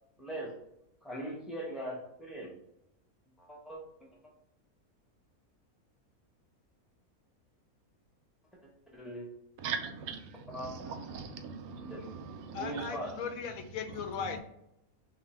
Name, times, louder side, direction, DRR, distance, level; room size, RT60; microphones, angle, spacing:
voice 1, 0.2-0.5 1.0-2.5 3.4-4.1 8.9-9.3 10.5-11.0 11.9-12.2 12.5-13.1, right 1 dB, ahead, 0.6 m, -40 dB
voice 2, 9.6-12.9, right 6 dB, 80° right, 1.0 m, -40 dB
voice 3, 12.5-14.4, left 6 dB, 75° left, 1.0 m, -38 dB
2.7 x 2.7 x 4.1 m
omnidirectional pair, 1.5 m